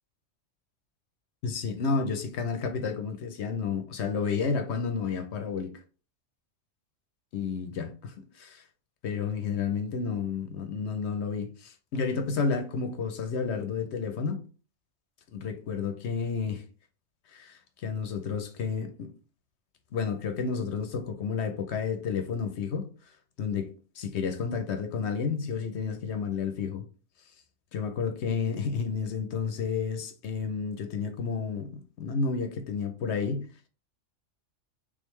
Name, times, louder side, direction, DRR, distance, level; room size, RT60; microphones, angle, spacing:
voice 1, 1.4-5.7 7.3-8.6 9.0-14.4 15.3-16.6 17.3-19.1 19.9-22.9 23.4-23.7 24.0-26.9 27.7-33.5, left 5 dB, 65° left, 0.9 m, -31 dB
3.6 x 3.6 x 3.1 m
omnidirectional pair, 1.3 m